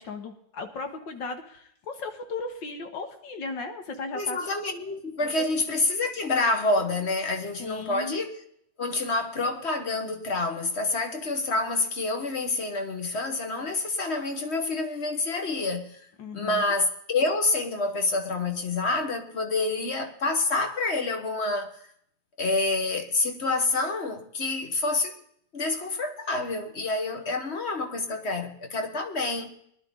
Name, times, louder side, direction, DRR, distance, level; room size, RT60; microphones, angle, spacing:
voice 1, 0.0-4.4 7.6-8.2 16.2-16.6, left 3 dB, 70° left, 2.0 m, -36 dB
voice 2, 4.1-8.3 8.8-16.0 16.3-21.7 22.4-25.1 25.5-29.5, left 3 dB, 35° left, 1.5 m, -27 dB
20.0 x 11.5 x 3.8 m
omnidirectional pair, 2.1 m